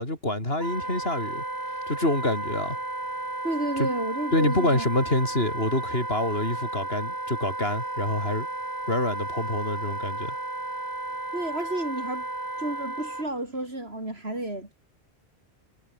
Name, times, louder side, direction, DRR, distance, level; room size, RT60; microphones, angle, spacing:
voice 1, 0.0-1.4 1.9-2.8 3.8-3.9 4.3-8.5 8.9-10.4, left 1 dB, 60° left, 6.8 m, -26 dB
Wind instrument woodwind instrument, 0.6-13.3, right 2 dB, 20° right, 1.7 m, -33 dB
voice 2, 3.4-4.8 11.3-12.3 12.6-14.7, right 1 dB, 65° right, 6.0 m, -31 dB
omnidirectional pair, 1.1 m